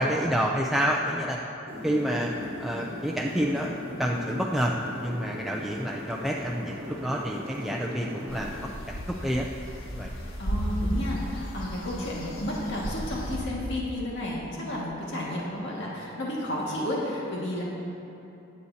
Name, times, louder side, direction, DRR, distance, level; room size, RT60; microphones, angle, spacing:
voice 1, 0.0-1.4 1.8-2.3 2.6-3.7 4.0-4.7 5.0-9.5 9.9-10.1, equal, ahead, -2 dB, 0.5 m, -28 dB
sound 1, 1.7-8.6, left 1 dB, 30° right, 2.9 m, -38 dB
sound 2, 8.3-13.4, equal, 90° left, 1.5 m, -34 dB
voice 2, 10.4-17.6, left 1 dB, 65° left, -5 dB, 1.9 m, -32 dB
21.0 x 8.5 x 2.8 m, 2.9 s
head